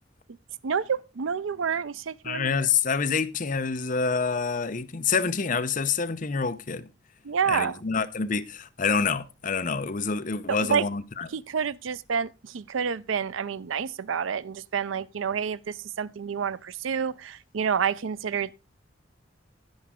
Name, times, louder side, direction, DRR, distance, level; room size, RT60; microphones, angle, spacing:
voice 1, 0.6-2.5 7.2-7.8 10.5-10.9 11.3-18.5, right 7 dB, 85° right, 0.5 m, -29 dB
voice 2, 2.2-6.9 7.5-11.3, left 5 dB, 45° left, 0.7 m, -27 dB
10.5 x 10.5 x 3.6 m
head